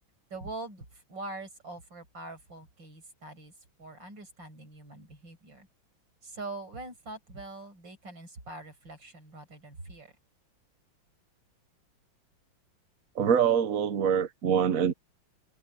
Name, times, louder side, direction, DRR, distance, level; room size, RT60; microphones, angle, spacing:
voice 1, 0.3-3.5 3.8-5.7 6.2-10.1, right 2 dB, 70° right, 7.1 m, -43 dB
voice 2, 13.2-14.9, right 8 dB, 55° right, 1.1 m, -24 dB
omnidirectional pair, 2.1 m